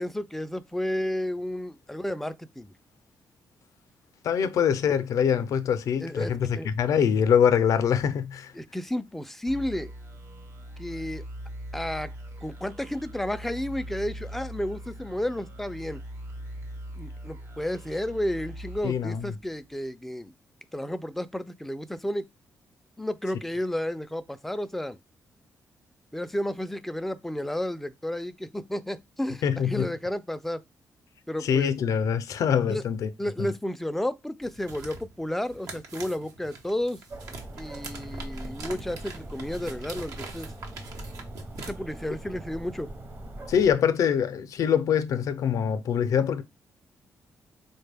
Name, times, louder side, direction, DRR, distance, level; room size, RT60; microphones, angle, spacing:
voice 1, 0.0-2.7 6.0-6.7 8.5-9.9 10.8-11.2 11.7-12.1 12.4-16.0 17.0-20.3 20.7-22.3 23.0-25.0 26.1-30.6 31.3-31.7 32.7-32.8 33.2-37.0 37.6-40.5 41.7-42.9, left 1 dB, 5° left, 0.3 m, -32 dB
voice 2, 4.2-8.5 18.8-19.3 29.4-29.9 31.4-33.1 33.4-33.5 43.5-46.4, left 8 dB, 75° left, 0.4 m, -24 dB
sound 1, 9.5-19.8, equal, 55° right, 1.1 m, -41 dB
sound 2, 34.4-41.7, right 3 dB, 90° right, 0.9 m, -43 dB
sound 3, 37.1-43.7, right 1 dB, 35° right, 0.7 m, -41 dB
3.9 x 2.2 x 3.3 m
cardioid pair, 100°, 6 cm